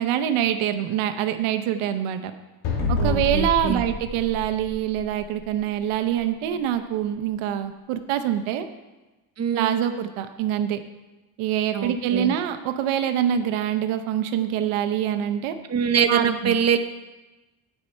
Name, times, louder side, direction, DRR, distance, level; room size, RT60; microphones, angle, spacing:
voice 1, 0.0-2.3 2.9-8.7 9.5-10.8 11.4-15.5 16.1-16.6, right 10 dB, 85° right, 8 dB, 0.9 m, -25 dB
sound 1, 2.6-5.3, left 3 dB, 70° left, 2.7 m, -27 dB
voice 2, 3.0-3.8 9.4-9.8 11.7-12.4 15.7-16.8, right 7 dB, 30° right, 8 dB, 0.8 m, -24 dB
10.5 x 5.6 x 7.7 m, 1.1 s
cardioid pair, 90°, 48 cm